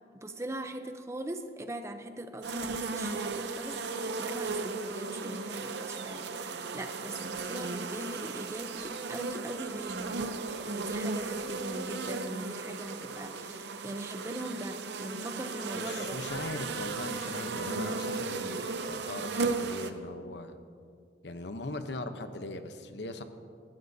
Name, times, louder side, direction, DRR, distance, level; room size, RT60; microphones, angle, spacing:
voice 1, 0.1-16.2, right 1 dB, 15° right, 7 dB, 0.6 m, -41 dB
sound 1, 2.4-19.9, right 4 dB, 75° right, 0.7 m, -35 dB
voice 2, 15.7-20.6 21.2-23.2, left 2 dB, 75° left, 8 dB, 0.8 m, -40 dB
19.5 x 13.0 x 2.7 m, 2.2 s
head